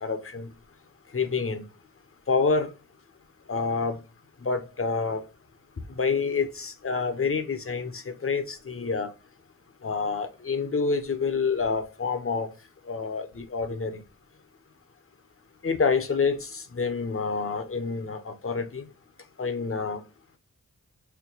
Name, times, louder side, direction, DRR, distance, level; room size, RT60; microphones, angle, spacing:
voice 1, 0.0-0.5 1.1-1.7 2.3-2.7 3.5-4.0 4.4-5.2 6.0-9.1 9.8-12.5 12.9-14.0 15.6-18.8 19.4-20.0, left 4 dB, 35° left, 0.8 m, -27 dB
4.4 x 2.2 x 4.0 m
cardioid pair, 40°, 36 cm